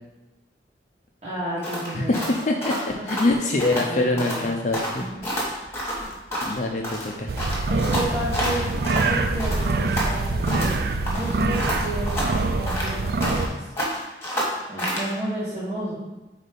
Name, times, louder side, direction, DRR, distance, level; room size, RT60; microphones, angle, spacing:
voice 1, 1.2-2.3 3.0-3.2 3.7-4.5 5.0-5.2 6.0-6.1 7.7-8.7 9.0-13.6 14.2-16.0, right 1 dB, 40° right, -8 dB, 1.2 m, -32 dB
sound 1, 1.6-3.9 4.2-4.5 4.7-6.6 6.8-9.1 9.4-10.8 11.1-13.5 13.8-15.1, equal, 15° left, 1.3 m, -29 dB
voice 2, 1.9-5.1 6.4-7.3, left 2 dB, 45° left, 1 dB, 0.5 m, -24 dB
sound 2, 5.1-12.6, equal, 10° right, 1.4 m, -43 dB
sound 3, 7.3-13.5, right 3 dB, 55° right, 0.4 m, -25 dB
4.4 x 4.2 x 5.1 m, 1.1 s
head